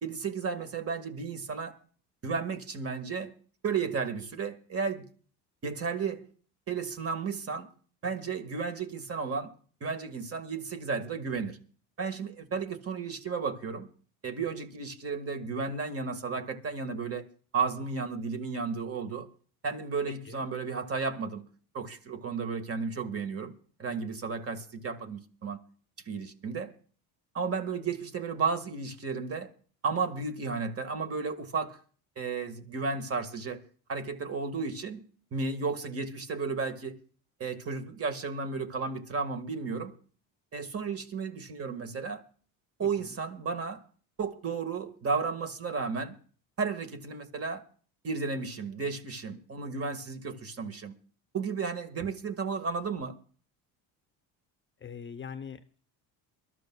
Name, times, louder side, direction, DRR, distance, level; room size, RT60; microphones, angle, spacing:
voice 1, 0.0-1.8 2.2-3.3 3.6-5.1 5.6-6.3 6.7-7.7 8.0-9.5 9.8-11.6 12.0-13.9 14.2-17.3 17.5-19.3 19.6-21.5 21.7-23.5 23.8-25.6 26.1-26.7 27.3-29.5 29.8-31.8 32.2-33.6 33.9-35.0 35.3-37.0 37.4-40.0 40.5-42.2 42.8-43.8 44.2-46.2 46.6-47.6 48.0-50.9 51.3-53.1, right 5 dB, 35° right, 1.8 m, -33 dB
voice 2, 54.8-55.8, left 7 dB, 30° left, 0.7 m, -42 dB
23.5 x 12.5 x 2.3 m
supercardioid pair, 95°, 39 cm